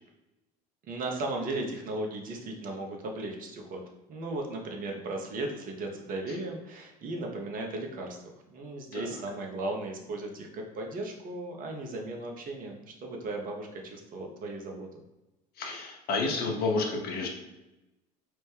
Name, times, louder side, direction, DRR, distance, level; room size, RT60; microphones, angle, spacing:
voice 1, 0.9-3.8 4.1-14.9, right 2 dB, 45° right, 1 dB, 0.7 m, -36 dB
voice 2, 15.6-17.3, left 3 dB, 50° left, 1 dB, 0.7 m, -30 dB
3.0 x 2.1 x 3.4 m, 1.0 s
hypercardioid pair, 70°, 20 cm